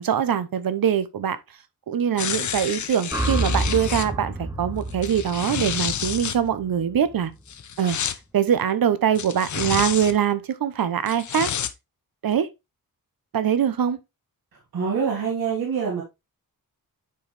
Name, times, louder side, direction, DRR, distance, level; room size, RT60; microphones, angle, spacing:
voice 1, 0.0-1.4 1.9-7.3 7.8-8.0 8.3-11.5 12.2-12.5 13.3-14.0, right 9 dB, 70° right, 0.9 m, -23 dB
sound 1, 2.2-4.1 4.9-6.4 7.5-8.2 9.2-10.2 11.1-11.7 12.3-12.4, left 8 dB, 55° left, 0.7 m, -29 dB
sound 2, 3.1-7.3, right 1 dB, 10° right, 1.4 m, -29 dB
voice 2, 14.7-16.0, right 6 dB, 90° right, 2.3 m, -25 dB
8.5 x 4.7 x 3.4 m
wide cardioid pair, 110°, 36 cm